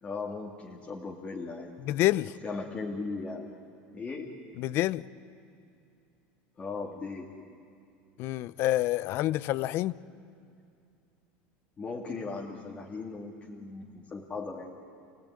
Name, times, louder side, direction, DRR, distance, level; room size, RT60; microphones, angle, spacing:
voice 1, 0.0-1.7 2.2-3.5 3.9-4.3 6.6-7.3 11.8-14.7, left 4 dB, 20° left, -2 dB, 2.3 m, -38 dB
voice 2, 1.9-2.3 4.6-5.1 8.2-9.9, left 15 dB, 50° left, 19 dB, 0.6 m, -27 dB
28.0 x 18.0 x 9.9 m, 2.5 s
supercardioid pair, 140°, 5 cm